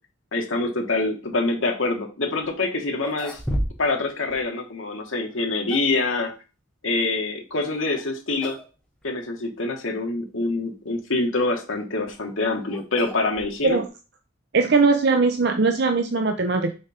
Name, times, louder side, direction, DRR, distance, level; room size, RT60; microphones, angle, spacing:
voice 1, 0.3-3.4 3.8-6.3 6.8-8.6 9.0-13.8, left 2 dB, 85° left, 3 dB, 1.5 m, -25 dB
sound 1, 2.4-2.5 2.9-4.0 4.3-4.4 5.3-6.0 7.8-8.1 8.4-8.7 9.0-9.1 9.9-10.0 11.8-13.9, equal, 5° left, 1.3 m, -33 dB
voice 2, 14.5-16.7, right 4 dB, 60° right, 5 dB, 0.6 m, -20 dB
6.3 x 3.8 x 4.3 m, 0.32 s
head